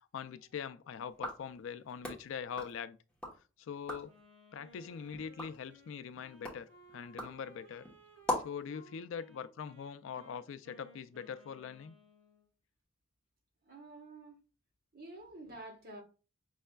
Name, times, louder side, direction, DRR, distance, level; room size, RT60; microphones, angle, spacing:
voice 1, 0.1-3.0 3.6-4.1 4.5-7.9 8.4-12.0, left 7 dB, 65° left, 0.3 m, -43 dB
sound 1, 1.1-3.4 3.7-4.2 4.7-8.7, left 1 dB, 5° left, 1.0 m, -42 dB
Wind instrument woodwind instrument, 4.0-12.5, equal, 85° right, 2.1 m, -60 dB
voice 2, 13.7-14.4 14.9-16.0, right 2 dB, 50° right, 1.3 m, -49 dB
5.4 x 3.2 x 2.2 m
head